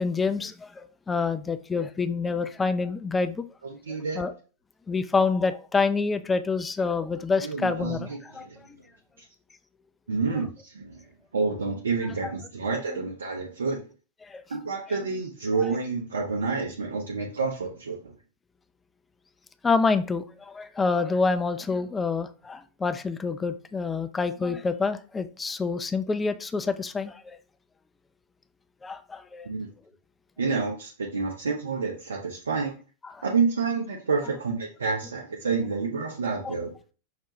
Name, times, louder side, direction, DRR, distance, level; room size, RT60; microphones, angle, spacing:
voice 1, 0.0-3.4 4.2-4.3 4.9-8.5 10.3-10.4 14.2-14.4 19.6-27.4 28.8-29.5 33.0-33.2 36.4-36.7, left 4 dB, 15° left, 0.3 m, -27 dB
voice 2, 3.7-4.2 7.4-8.6 10.1-11.0 11.3-13.8 14.5-18.1 29.4-29.7 30.4-32.7 33.2-36.7, right 4 dB, 70° right, 0.6 m, -29 dB
5.7 x 2.2 x 2.9 m
figure-of-eight pair, 90°, 0 cm